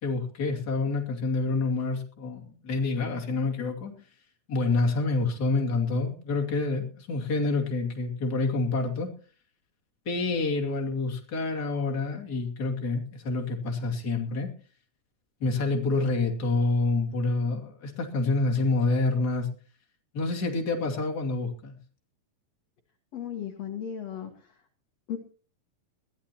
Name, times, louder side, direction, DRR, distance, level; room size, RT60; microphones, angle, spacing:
voice 1, 0.0-3.9 4.5-9.1 10.1-14.5 15.4-19.5 20.1-21.8, left 3 dB, 30° left, 1 dB, 2.7 m, -27 dB
voice 2, 23.1-24.6 25.1-25.2, left 9 dB, 55° left, 5 dB, 2.3 m, -36 dB
21.5 x 15.0 x 2.9 m, 0.37 s
omnidirectional pair, 4.0 m